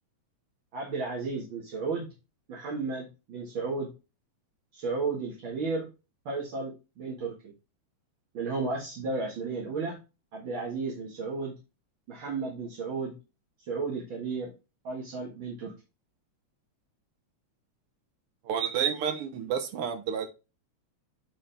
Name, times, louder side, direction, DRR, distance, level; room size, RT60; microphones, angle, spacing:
voice 1, 0.7-2.1 2.5-3.9 4.7-5.9 6.3-7.3 8.3-10.0 10.3-11.5 12.1-13.1 13.7-14.5 14.8-15.7, right 4 dB, 50° right, -2 dB, 2.0 m, -33 dB
voice 2, 18.4-20.3, right 8 dB, 65° right, 6 dB, 1.4 m, -30 dB
8.7 x 3.9 x 3.3 m, 0.29 s
omnidirectional pair, 3.3 m